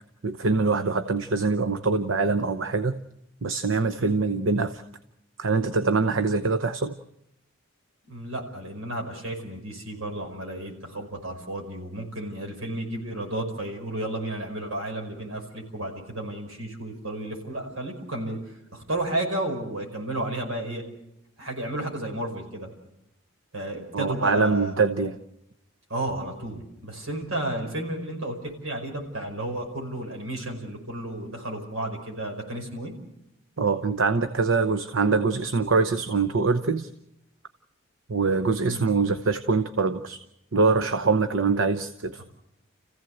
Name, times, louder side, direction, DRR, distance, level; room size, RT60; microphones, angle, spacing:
voice 1, 0.2-3.0 3.4-4.8 5.4-6.9 23.9-25.2 33.6-36.9 38.1-40.2 40.5-42.2, right 4 dB, 70° right, 9 dB, 0.8 m, -24 dB
voice 2, 8.1-18.4 18.7-20.8 21.4-22.7 23.5-24.8 25.9-32.9 38.6-38.9 42.2-42.3, right 1 dB, 90° right, 2 dB, 5.3 m, -32 dB
29.0 x 15.5 x 7.8 m, 0.86 s
head